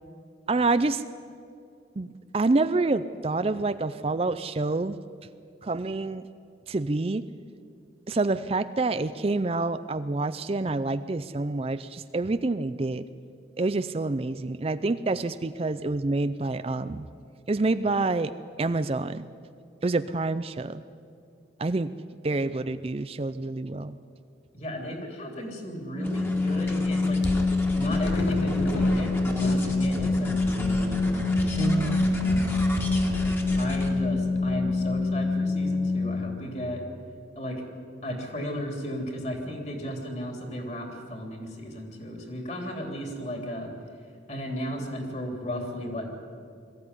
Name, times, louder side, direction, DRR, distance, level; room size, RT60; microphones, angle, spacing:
voice 1, 0.5-1.0 2.0-5.0 5.6-6.2 6.7-7.2 8.1-13.1 13.6-17.0 17.5-19.3 19.8-20.8 21.6-21.9 22.2-24.0 31.6-32.1, right 3 dB, 30° right, 12 dB, 0.4 m, -27 dB
voice 2, 24.5-27.2 27.7-32.8 33.6-36.8 37.4-37.6 38.0-43.7 44.3-46.1, equal, 40° left, 3 dB, 3.2 m, -35 dB
Organ, 25.9-36.7, left 3 dB, 5° right, 1.4 m, -26 dB
sound 1, 26.0-33.9, left 1 dB, 15° left, 2.1 m, -38 dB
sound 2, 27.2-34.5, equal, 75° left, 2.0 m, -31 dB
21.5 x 14.5 x 9.8 m, 2.4 s
head